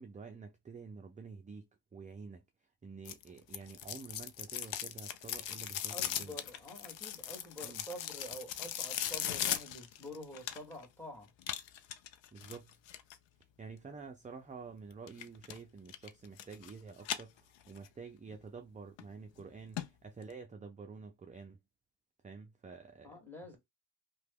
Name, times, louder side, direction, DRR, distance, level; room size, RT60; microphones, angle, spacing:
voice 1, 0.0-2.4 2.8-6.4 7.6-7.8 12.3-12.8 13.6-21.6 22.2-23.1, right 4 dB, 20° right, 0.4 m, -49 dB
sound 1, 3.1-10.9 11.4-13.2 15.1-15.6 15.9-16.7 17.0-17.9 18.3-18.4 19.0-19.1 19.4-19.5 19.8-19.9 20.2-20.3, left 11 dB, 80° left, 0.6 m, -39 dB
voice 2, 5.9-11.3 13.9-14.0 23.0-23.6, equal, 5° left, 1.5 m, -48 dB
2.9 x 2.2 x 3.4 m
cardioid pair, 95°, 44 cm